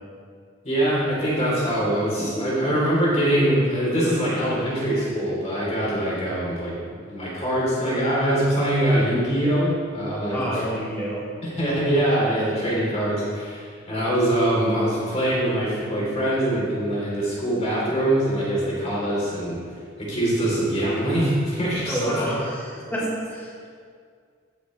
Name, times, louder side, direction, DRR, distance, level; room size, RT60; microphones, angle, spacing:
voice 1, 0.6-10.6 11.4-19.6 20.0-22.3, right 1 dB, 35° left, -6 dB, 3.3 m, -23 dB
voice 2, 10.3-11.2 21.8-23.7, equal, 10° left, -10 dB, 3.5 m, -28 dB
16.0 x 11.0 x 3.2 m, 2.1 s
head